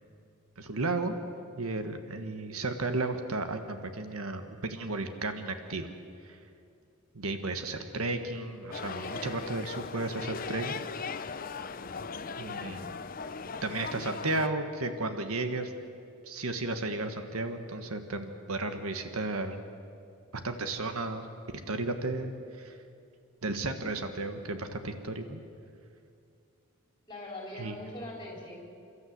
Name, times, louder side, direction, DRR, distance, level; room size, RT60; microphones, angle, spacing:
voice 1, 0.6-1.1 1.6-5.9 6.2-6.4 7.1-10.8 12.4-12.9 13.6-15.7 16.2-19.6 20.3-21.3 21.7-22.8 23.4-25.4 27.6-27.7, right 2 dB, 75° right, 7 dB, 1.5 m, -34 dB
sound 1, 8.7-14.5, left 5 dB, 40° left, 0.6 m, -38 dB
voice 2, 12.5-12.9 27.1-28.5, left 1 dB, 20° left, -1 dB, 4.8 m, -42 dB
29.0 x 13.5 x 8.0 m, 2.4 s
head